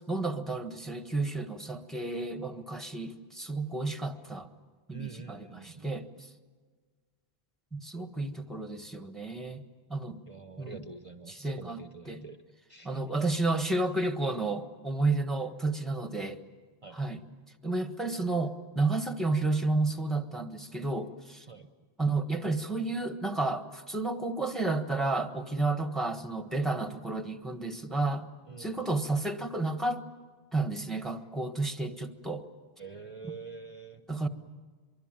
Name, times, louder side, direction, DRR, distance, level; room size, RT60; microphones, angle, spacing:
voice 1, 0.0-4.5 4.9-6.3 7.7-9.6 9.9-10.2 10.6-10.8 11.3-12.3 12.8-16.4 16.9-17.2 17.6-21.5 22.0-28.3 28.6-30.0 30.5-32.4 34.1-34.3, right 2 dB, ahead, 8 dB, 1.3 m, -31 dB
voice 2, 4.9-5.9 10.3-12.4 12.7-13.0 16.8-17.1 21.5-21.7 28.5-28.9 32.8-34.0, right 5 dB, 35° right, 8 dB, 0.9 m, -46 dB
24.5 x 23.5 x 9.0 m, 1.5 s
omnidirectional pair, 1.0 m